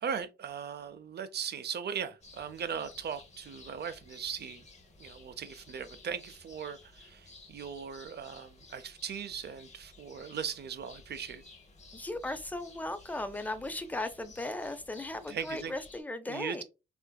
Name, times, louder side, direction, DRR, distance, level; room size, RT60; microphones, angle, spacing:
voice 1, 0.0-4.6 5.0-11.4 15.3-15.7 16.3-16.6, right 7 dB, 65° right, 0.5 m, -39 dB
sound 1, 2.2-16.0, left 3 dB, 40° left, 0.9 m, -55 dB
voice 2, 11.9-16.6, left 2 dB, 10° left, 0.5 m, -37 dB
3.6 x 2.5 x 2.2 m
wide cardioid pair, 100°, 19 cm